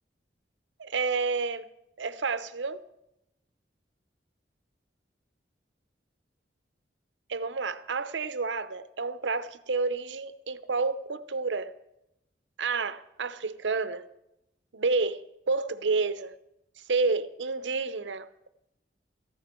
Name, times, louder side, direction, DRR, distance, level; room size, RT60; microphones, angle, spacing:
voice 1, 0.8-1.7 2.0-2.8 7.3-11.7 12.6-14.0 14.7-16.3 16.9-18.5, right 4 dB, 80° right, 0.7 m, -30 dB
17.0 x 14.0 x 4.4 m
head